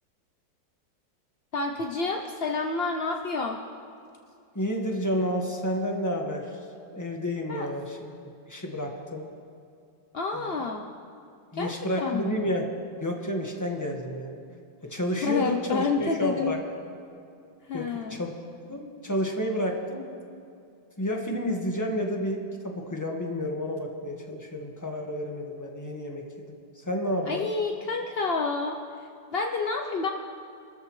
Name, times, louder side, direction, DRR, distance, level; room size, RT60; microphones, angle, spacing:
voice 1, 1.5-3.6 7.5-7.7 10.1-10.9 11.5-12.4 15.2-16.6 17.7-18.2 27.3-28.8 29.3-30.1, left 4 dB, 65° left, 2 dB, 0.6 m, -29 dB
voice 2, 4.5-6.7 6.9-8.1 8.5-9.2 10.3-10.7 11.5-12.7 13.0-14.4 14.8-16.6 17.7-18.3 18.7-20.0 21.0-27.4, equal, 10° left, 1 dB, 1.4 m, -30 dB
28.0 x 13.5 x 3.2 m, 2.5 s
omnidirectional pair, 2.0 m